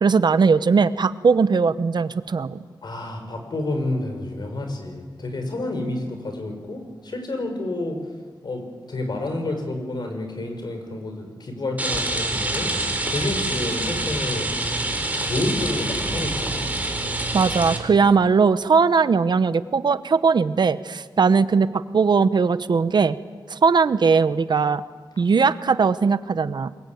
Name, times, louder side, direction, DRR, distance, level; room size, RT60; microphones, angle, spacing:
voice 1, 0.0-2.6 17.3-23.2 23.5-24.8 25.2-26.7, right 5 dB, 65° right, 14 dB, 0.9 m, -19 dB
voice 2, 2.8-8.0 8.4-12.7 13.1-14.5 15.2-16.7, left 2 dB, 60° left, 5 dB, 5.6 m, -29 dB
Rain, 11.8-17.8, right 2 dB, 20° right, 3.3 m, -26 dB
26.0 x 22.5 x 9.4 m, 1.5 s
wide cardioid pair, 115°, 8 cm